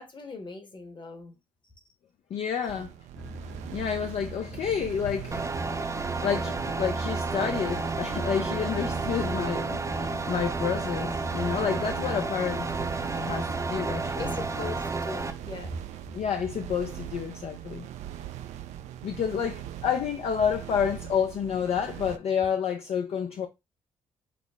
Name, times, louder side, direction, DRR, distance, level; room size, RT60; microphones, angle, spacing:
voice 1, 0.0-1.3 14.2-15.8, left 3 dB, 40° left, 1.3 m, -39 dB
voice 2, 2.3-2.9 3.7-5.5 5.8-12.7 13.2-14.4 16.1-17.9 19.0-23.5, left 7 dB, 60° left, 0.5 m, -29 dB
sound 1, 2.7-22.2, right 12 dB, 75° right, 0.4 m, -41 dB
sound 2, 3.1-14.9, equal, 10° left, 0.7 m, -43 dB
sound 3, 5.3-15.3, right 3 dB, 25° right, 0.7 m, -31 dB
5.9 x 2.0 x 3.3 m
hypercardioid pair, 50°, 12 cm